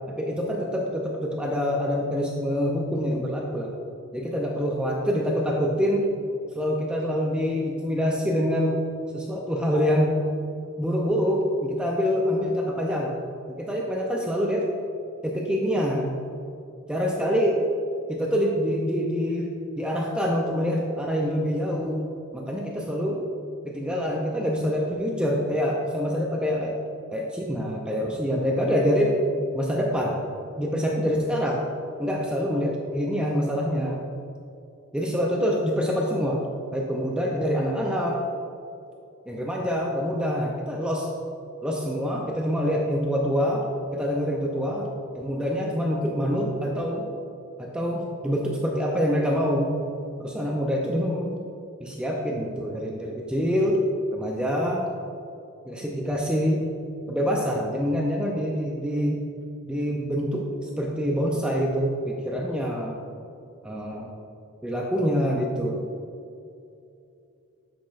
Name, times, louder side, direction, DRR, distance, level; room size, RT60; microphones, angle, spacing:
voice 1, 0.0-3.7 4.1-6.1 6.5-8.8 9.1-10.1 10.8-13.1 13.5-14.7 15.2-16.2 16.9-17.6 18.1-19.5 19.8-22.1 22.3-23.2 23.6-26.8 27.1-29.2 29.5-30.2 30.6-31.6 32.0-34.0 34.9-36.5 36.7-38.3 39.3-41.1 41.6-43.7 43.9-47.1 47.6-49.7 50.2-51.4 51.8-53.8 54.1-54.9 55.7-56.6 57.1-59.2 59.6-63.0 63.6-64.1 64.6-65.8, equal, 5° right, -1 dB, 0.4 m, -26 dB
8.3 x 5.9 x 2.4 m, 2.6 s
head